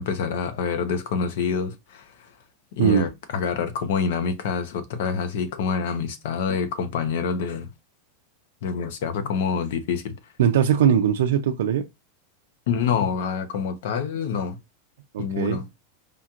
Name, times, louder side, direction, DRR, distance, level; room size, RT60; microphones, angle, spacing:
voice 1, 0.0-2.3 2.7-7.7 8.6-10.1 12.7-14.6 15.2-15.7, left 6 dB, 60° left, 0.8 m, -26 dB
voice 2, 10.4-11.9 15.1-15.6, right 9 dB, 80° right, 0.4 m, -20 dB
5.0 x 2.9 x 2.4 m
supercardioid pair, 165°, 0 cm